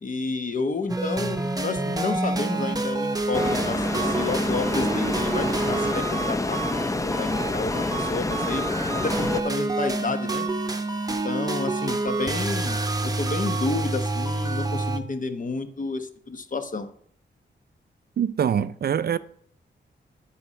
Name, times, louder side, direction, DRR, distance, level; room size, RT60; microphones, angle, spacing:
voice 1, 0.0-6.6 7.0-8.6 8.9-10.5 11.1-16.9, left 3 dB, 45° left, 1.0 m, -30 dB
sound 1, 0.9-15.0, right 2 dB, 20° right, 0.9 m, -28 dB
sound 2, 3.3-9.4, left 2 dB, 15° left, 0.6 m, -27 dB
voice 2, 18.2-19.2, right 8 dB, 55° right, 0.4 m, -24 dB
9.4 x 4.3 x 6.2 m
cardioid pair, 65°, 19 cm